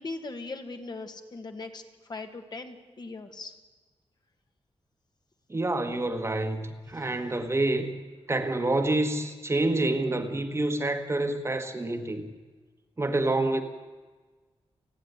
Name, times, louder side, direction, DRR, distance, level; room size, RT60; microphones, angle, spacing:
voice 1, 0.0-1.8 2.1-3.5 6.9-7.2, left 3 dB, 40° left, 1.8 m, -39 dB
voice 2, 5.5-7.9 8.3-12.3 13.0-13.6, right 2 dB, 25° right, 1.5 m, -27 dB
29.0 x 9.8 x 9.7 m
wide cardioid pair, 130°, 11 cm